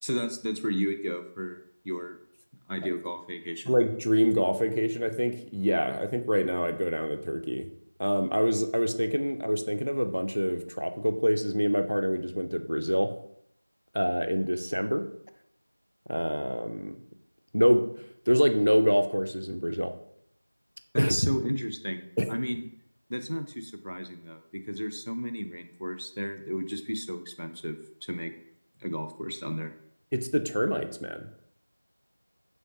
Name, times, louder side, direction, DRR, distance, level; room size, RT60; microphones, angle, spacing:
voice 1, 0.0-2.2 2.7-3.8 20.9-22.6 23.1-28.3 28.8-29.7, equal, 90° left, 7 dB, 0.3 m, -33 dB
voice 2, 3.7-7.7 8.0-13.1 13.9-15.1 16.1-17.0 17.5-17.9 18.3-19.9 21.0-21.2 22.2-22.3 30.1-31.3, equal, 90° right, 7 dB, 0.3 m, -26 dB
3.0 x 2.7 x 2.9 m, 0.71 s
figure-of-eight pair, 180°, 0 cm